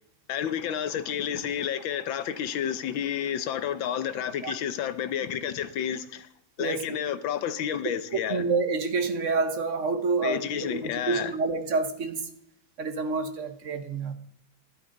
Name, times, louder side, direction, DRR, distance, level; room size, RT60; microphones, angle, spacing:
voice 1, 0.3-6.3 6.6-8.4 10.2-11.3, left 9 dB, 70° left, 1.5 m, -30 dB
voice 2, 8.3-12.3 12.8-14.1, right 4 dB, 45° right, 1.2 m, -28 dB
13.0 x 12.0 x 3.9 m
omnidirectional pair, 2.2 m